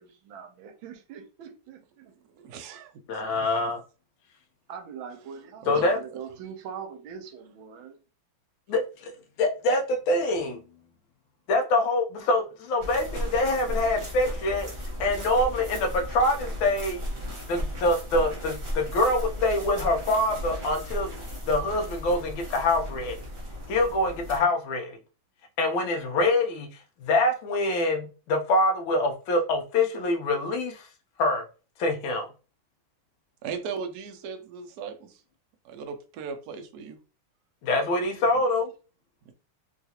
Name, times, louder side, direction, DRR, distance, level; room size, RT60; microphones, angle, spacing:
voice 1, 0.0-2.1 4.7-8.0, right 7 dB, 85° right, 1.4 m, -42 dB
voice 2, 2.4-3.5 5.6-5.9 33.4-35.2 35.6-37.0 39.3-39.4, right 6 dB, 70° right, 0.9 m, -38 dB
voice 3, 3.1-3.8 5.7-6.0 8.7-8.8 9.4-9.8 10.1-10.6 11.5-12.4 12.7-14.7 15.0-17.0 17.5-21.1 21.5-23.2 23.7-24.9 25.6-26.7 27.1-30.7 31.2-31.4 31.8-32.2 37.7-38.6, left 2 dB, 85° left, 1.5 m, -25 dB
sound 1, 12.8-24.4, equal, 50° right, 0.3 m, -35 dB
3.7 x 2.4 x 2.8 m
omnidirectional pair, 2.2 m